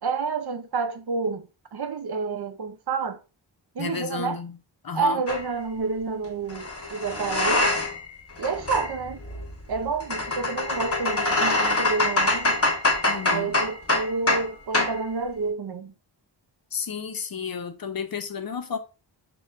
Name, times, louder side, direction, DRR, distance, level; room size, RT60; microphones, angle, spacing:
voice 1, 0.0-3.2 3.7-4.4 4.9-7.7 8.4-9.2 9.7-12.6 13.3-15.9, right 4 dB, 55° right, 0.6 m, -29 dB
voice 2, 3.8-4.6 4.8-5.2 13.1-13.6 16.7-18.8, left 6 dB, 50° left, 0.6 m, -32 dB
sound 1, 5.3-5.5 6.5-8.1 8.4-14.5 14.7-15.0, left 2 dB, 30° left, 1.0 m, -25 dB
6.3 x 2.2 x 2.4 m
cardioid pair, 50°, 48 cm